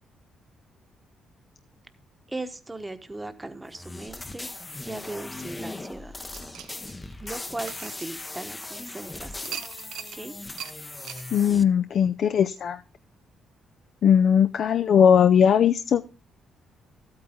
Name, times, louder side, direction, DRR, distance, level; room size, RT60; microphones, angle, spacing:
voice 1, 2.3-4.5 4.8-6.2 7.2-9.7 10.1-10.3, right 2 dB, 15° right, 8 dB, 1.1 m, -38 dB
sound 1, 3.7-11.6, left 2 dB, 20° left, 0.7 m, -39 dB
sound 2, 6.3-8.7 9.4-10.2 10.6-10.7 11.0-11.3, right 10 dB, 85° right, 0.7 m, -40 dB
voice 2, 11.3-12.8 14.0-16.0, left 8 dB, 65° left, 9 dB, 0.5 m, -19 dB
12.5 x 8.8 x 3.7 m, 0.32 s
cardioid pair, 90°, 0 cm